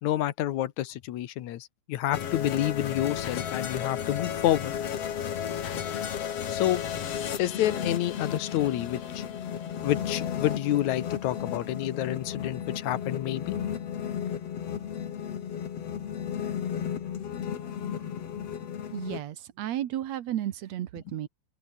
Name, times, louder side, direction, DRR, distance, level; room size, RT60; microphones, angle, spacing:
voice 1, 0.0-4.7 6.5-6.8 7.4-9.2 9.8-13.6, left 13 dB, 75° left, 2.4 m, -28 dB
sound 1, 2.1-19.2, left 8 dB, 60° left, 2.8 m, -33 dB
voice 2, 18.9-21.3, right 12 dB, 70° right, 2.3 m, -33 dB
omnidirectional pair, 3.3 m